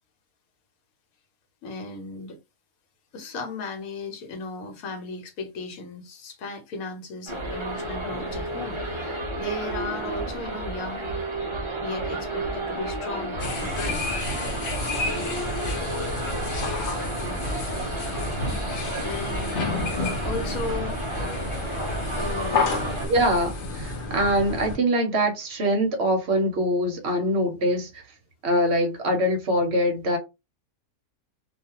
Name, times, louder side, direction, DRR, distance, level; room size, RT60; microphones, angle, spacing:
voice 1, 1.6-2.4 3.1-11.3 11.8-14.0 19.0-19.6 20.2-21.0 22.2-23.0, left 2 dB, 75° left, 1.2 m, -35 dB
sound 1, 7.3-23.1, right 1 dB, 35° right, 0.5 m, -32 dB
sound 2, 13.4-24.8, left 3 dB, 55° left, 0.6 m, -30 dB
voice 2, 23.0-27.9 28.4-30.2, equal, 60° right, 0.8 m, -23 dB
2.4 x 2.3 x 2.8 m
omnidirectional pair, 1.5 m